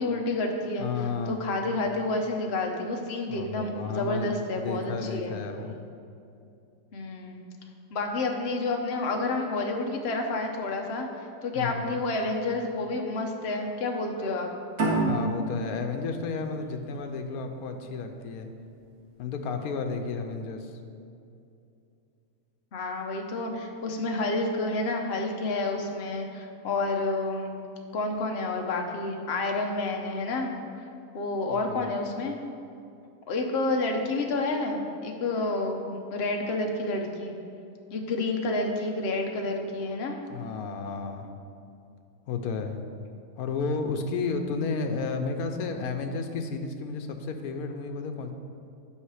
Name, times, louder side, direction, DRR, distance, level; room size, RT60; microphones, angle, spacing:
voice 1, 0.0-0.9 1.3-5.3 6.9-7.4 7.9-11.1 11.4-14.5 22.7-27.6 27.9-30.5 31.1-32.4 33.3-37.3 37.9-40.2, left 2 dB, 50° left, 2 dB, 1.0 m, -29 dB
voice 2, 0.8-1.4 3.3-5.8 11.5-12.0 15.1-18.5 19.2-20.7 31.5-31.9 40.3-41.3 42.3-42.8 43.4-48.3, left 4 dB, 80° left, 5 dB, 1.2 m, -32 dB
sound 1, 14.8-18.0, right 2 dB, 70° right, 2.1 m, -29 dB
8.6 x 5.7 x 4.8 m, 2.6 s
omnidirectional pair, 1.5 m